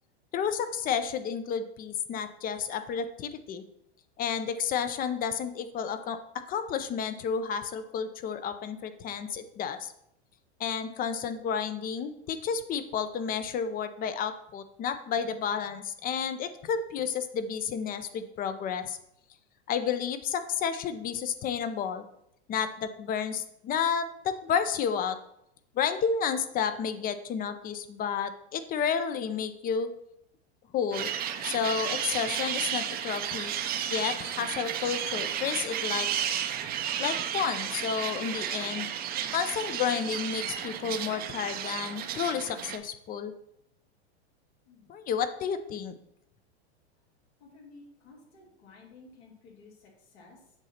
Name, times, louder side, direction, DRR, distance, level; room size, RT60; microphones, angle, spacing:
voice 1, 0.3-3.6 4.2-6.2 6.5-9.9 10.6-19.0 19.7-22.0 22.5-25.2 25.7-29.9 30.7-31.1 31.4-33.5 33.9-36.1 37.0-38.9 39.3-43.3 44.9-45.9, left 7 dB, 25° left, 11 dB, 0.6 m, -31 dB
sound 1, 30.9-42.8, right 9 dB, 30° right, 0.6 m, -33 dB
voice 2, 47.4-49.7 50.1-50.4, left 3 dB, 75° left, -2 dB, 2.8 m, -53 dB
8.0 x 2.8 x 5.7 m, 0.76 s
hypercardioid pair, 120°, 33 cm